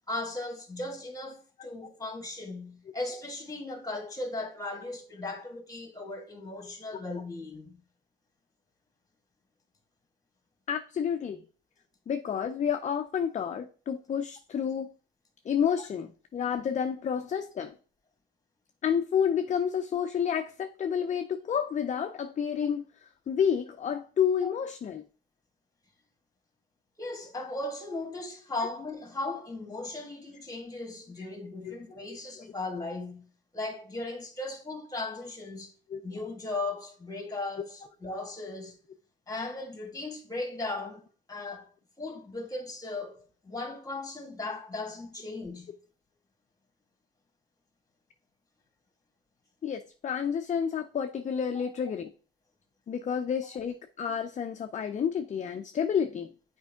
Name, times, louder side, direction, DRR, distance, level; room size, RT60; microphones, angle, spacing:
voice 1, 0.1-7.8 24.4-24.5 27.0-33.3 33.5-35.7 36.0-38.8 39.3-41.0 41.3-41.7 42.0-45.7, left 2 dB, 15° left, 1.7 m, -37 dB
voice 2, 10.7-11.4 12.1-14.9 15.5-17.7 18.8-22.9 23.3-25.0 35.9-36.0 49.6-52.1 52.9-56.3, left 7 dB, 40° left, 0.5 m, -30 dB
7.3 x 4.5 x 3.5 m
cardioid pair, 90°, 20 cm